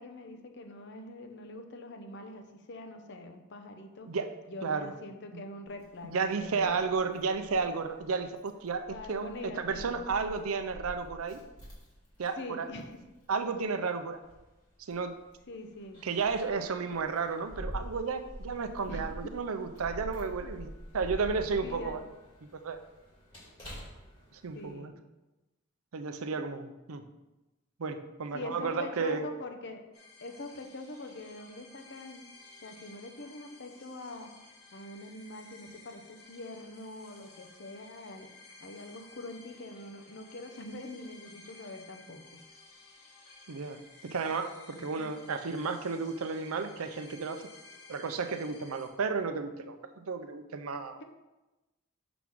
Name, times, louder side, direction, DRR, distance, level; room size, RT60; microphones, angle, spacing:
voice 1, 0.0-4.1 4.5-7.1 8.9-10.1 12.4-12.9 15.5-16.0 18.9-19.3 21.6-22.0 24.5-24.9 28.3-29.8 30.2-32.2 32.6-34.3 34.7-38.3 38.6-42.4 44.7-45.1, left 2 dB, 55° left, 5 dB, 0.7 m, -44 dB
voice 2, 4.6-4.9 5.3-5.4 6.0-11.4 12.2-12.7 13.3-14.2 14.8-15.2 16.0-22.0 22.5-22.8 24.3-24.9 25.9-27.0 27.8-29.2 43.5-47.4 47.9-51.0, right 4 dB, 70° right, 8 dB, 0.5 m, -33 dB
Keys jangling, 5.7-24.7, equal, 20° left, 2.4 m, -47 dB
sound 1, 29.9-48.9, left 3 dB, 85° left, 1.8 m, -55 dB
6.0 x 3.6 x 6.0 m, 1.0 s
head